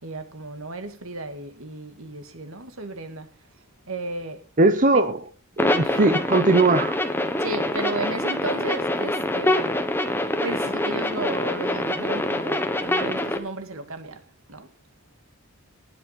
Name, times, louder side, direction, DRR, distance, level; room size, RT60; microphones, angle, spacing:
voice 1, 0.0-3.3 3.9-4.4 4.9-5.1 5.8-6.0 7.4-9.8 10.4-14.2 14.5-14.7, right 2 dB, 70° right, 2.1 m, -34 dB
voice 2, 4.6-5.2 5.6-6.9, right 2 dB, 35° right, 1.1 m, -19 dB
sound 1, 5.6-13.4, left 1 dB, 10° left, 1.4 m, -25 dB
19.0 x 7.5 x 5.7 m
head